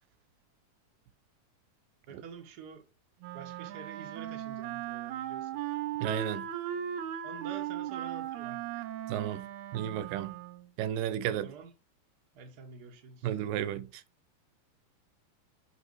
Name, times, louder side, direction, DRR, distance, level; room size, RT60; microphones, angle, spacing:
voice 1, 2.1-2.8 3.3-5.6 7.2-8.8 11.3-11.7 12.3-13.3, right 6 dB, 45° right, 1.3 m, -47 dB
Wind instrument woodwind instrument, 3.2-10.7, right 11 dB, 75° right, 2.0 m, -38 dB
voice 2, 6.0-6.5 9.1-9.5 9.7-10.4 10.8-11.5 13.2-13.9, right 11 dB, 90° right, 2.5 m, -33 dB
6.4 x 5.4 x 4.7 m
omnidirectional pair, 3.9 m